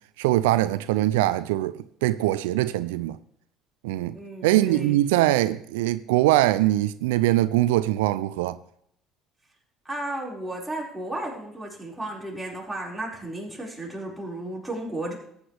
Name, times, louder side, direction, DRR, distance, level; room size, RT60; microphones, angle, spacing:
voice 1, 0.2-3.2 3.8-4.2 4.4-8.6, right 15 dB, 85° right, 0.4 m, -22 dB
voice 2, 4.1-5.0 9.8-15.1, right 1 dB, 5° right, 5.0 m, -34 dB
14.0 x 9.6 x 3.4 m
hypercardioid pair, 70°, 0 cm